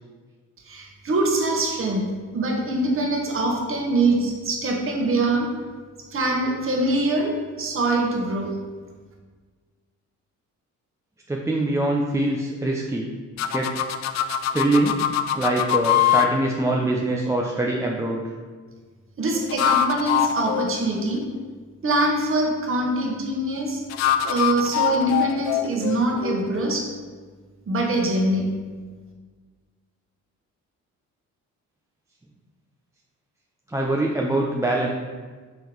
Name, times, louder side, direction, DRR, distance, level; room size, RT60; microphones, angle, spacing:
voice 1, 0.7-2.0 2.3-5.5 6.1-8.5 19.2-21.2 21.8-23.8 24.2-26.9 27.7-28.4, right 2 dB, 45° right, 0 dB, 1.4 m, -23 dB
voice 2, 11.3-13.1 13.5-13.7 14.5-15.0 15.4-18.2 33.7-34.9, right 2 dB, 10° right, -2 dB, 0.5 m, -23 dB
sound 1, 13.4-16.3 19.3-21.5 23.9-26.8, left 10 dB, 65° left, 0.4 m, -24 dB
5.6 x 3.7 x 4.6 m, 1.5 s
cardioid pair, 90°, 30 cm